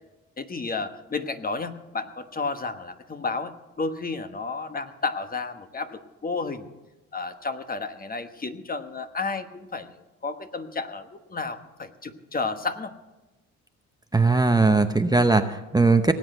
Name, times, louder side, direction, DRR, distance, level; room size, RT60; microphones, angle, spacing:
voice 1, 0.4-6.7 7.1-9.9 10.2-12.9, left 4 dB, 30° left, 9 dB, 1.2 m, -32 dB
voice 2, 14.1-16.1, right 3 dB, 15° right, 7 dB, 0.7 m, -19 dB
18.5 x 7.9 x 7.9 m, 1.0 s
cardioid pair, 90°, 30 cm